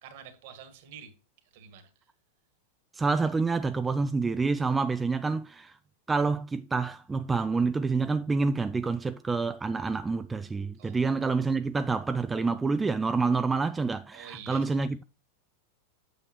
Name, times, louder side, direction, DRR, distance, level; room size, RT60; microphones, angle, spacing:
voice 1, 0.0-2.1 10.7-11.0 13.1-13.2 14.1-14.9, right 8 dB, 50° right, 1.6 m, -48 dB
voice 2, 2.9-5.8 6.1-15.0, right 4 dB, 10° right, 0.3 m, -28 dB
8.8 x 6.5 x 2.9 m
figure-of-eight pair, 90°, 0 cm